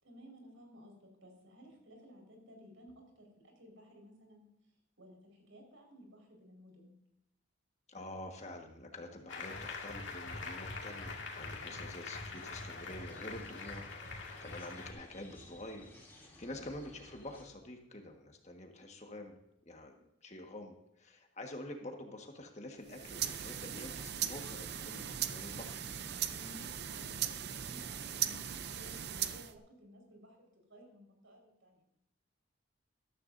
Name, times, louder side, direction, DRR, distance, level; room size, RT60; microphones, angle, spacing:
voice 1, 0.0-4.5 5.0-6.9 11.6-11.8 26.3-30.4 30.6-32.0, equal, 80° right, 2 dB, 4.8 m, -57 dB
voice 2, 7.9-19.4 19.6-19.9 20.2-25.8, left 1 dB, 35° left, 3 dB, 1.5 m, -47 dB
Applause, 9.3-14.9, left 3 dB, 70° left, 2.1 m, -43 dB
sound 1, 12.2-17.5, left 1 dB, 10° left, 2.8 m, -58 dB
sound 2, 22.9-29.6, right 9 dB, 55° right, 0.6 m, -39 dB
14.0 x 13.5 x 2.6 m, 0.81 s
head